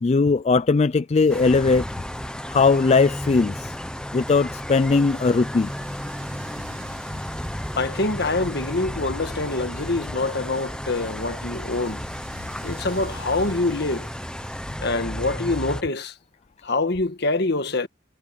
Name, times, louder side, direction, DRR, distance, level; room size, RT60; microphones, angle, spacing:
voice 1, 0.0-1.8 2.5-3.8 4.1-5.7, left 4 dB, 35° left, 0.4 m, -19 dB
sound 1, 1.1-14.8, right 4 dB, 85° right, 7.4 m, -49 dB
sound 2, 1.3-15.8, equal, 5° left, 0.8 m, -33 dB
voice 2, 7.8-12.0 12.6-14.1 14.8-16.1 16.6-17.9, left 2 dB, 60° left, 1.4 m, -25 dB
head